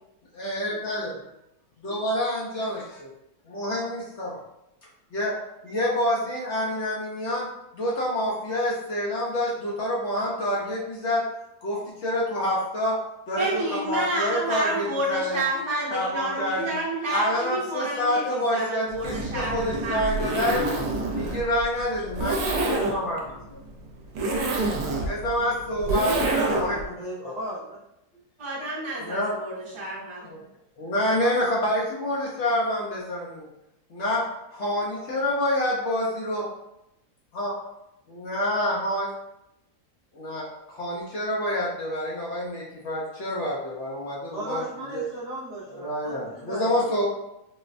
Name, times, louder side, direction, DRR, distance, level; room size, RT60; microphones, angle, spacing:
voice 1, 0.3-1.2 1.8-3.1 3.5-4.4 5.1-5.3 5.6-7.5 7.7-11.2 11.6-13.0 13.3-15.4 15.9-16.8 17.1-20.7 21.1-23.6 25.0-26.9 27.2-27.4 29.0-29.3 30.2-30.4 30.8-33.5 33.9-34.2 34.5-36.5 37.3-37.5 38.1-39.1 40.1-44.6 44.9-45.1 45.7-47.0, left 1 dB, 60° left, -4 dB, 0.8 m, -27 dB
voice 2, 13.4-20.6 28.4-30.3, right 1 dB, 25° right, -9 dB, 0.7 m, -30 dB
Zipper (clothing), 18.9-26.9, right 2 dB, 70° right, 1.1 m, -27 dB
voice 3, 25.8-27.8 44.3-46.9, equal, 55° right, -10 dB, 0.4 m, -36 dB
4.0 x 2.1 x 2.5 m, 0.85 s
omnidirectional pair, 1.7 m